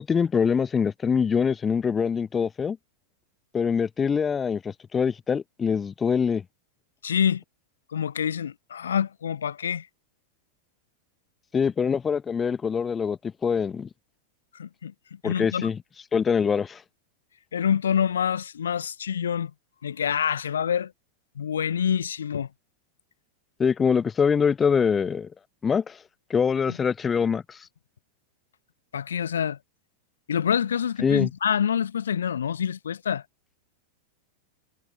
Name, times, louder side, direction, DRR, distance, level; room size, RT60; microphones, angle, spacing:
voice 1, 0.0-2.8 3.5-6.4 11.5-13.9 15.2-15.8 16.1-16.8 23.6-25.3 25.6-26.0 26.3-27.6 31.0-31.3, left 6 dB, 20° left, 1.0 m, -24 dB
voice 2, 7.0-7.4 7.9-9.9 14.5-15.7 17.5-19.5 19.8-20.9 21.3-22.5 26.7-26.8 28.9-29.6 30.3-33.2, left 8 dB, 65° left, 1.1 m, -26 dB
figure-of-eight pair, 90°, 0 cm